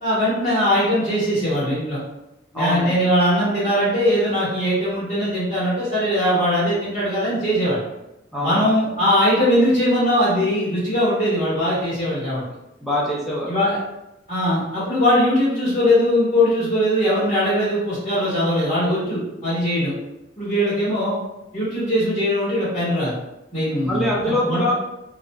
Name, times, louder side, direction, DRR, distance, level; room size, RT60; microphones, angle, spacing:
voice 1, 0.0-2.0 2.5-7.8 8.4-12.4 13.5-13.8 14.3-19.9 20.4-21.1 21.5-23.1 23.5-24.6, equal, 35° left, -11 dB, 1.2 m, -20 dB
voice 2, 2.5-3.0 8.3-8.6 12.8-13.6 23.8-24.7, left 1 dB, ahead, -7 dB, 0.5 m, -23 dB
2.5 x 2.2 x 3.0 m, 0.94 s
head